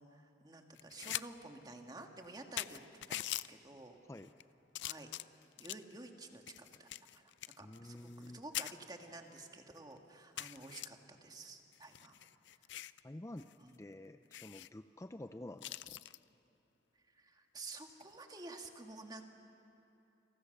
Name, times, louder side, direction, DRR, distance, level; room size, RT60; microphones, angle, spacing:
voice 1, 0.0-2.8 3.1-4.0 4.8-5.1 5.6-12.2 13.6-13.8 17.1-19.3, right 2 dB, 20° right, 4 dB, 1.8 m, -51 dB
sound 1, 0.8-1.3 1.6-1.7 2.2-2.3 2.6-3.5 4.2-4.4 4.7-5.9 6.5-8.3 8.5-8.7 9.4-9.5 9.8-9.9 10.4-10.9 11.7-13.0 13.4-13.5 13.8-13.9 14.3-14.7 15.6-16.2 17.9-18.1, left 13 dB, 80° left, 0.5 m, -43 dB
voice 2, 7.6-8.4 13.0-13.5 13.8-16.0 17.8-18.0, left 1 dB, 15° left, 8 dB, 0.5 m, -49 dB
29.5 x 23.5 x 6.6 m, 3.0 s
head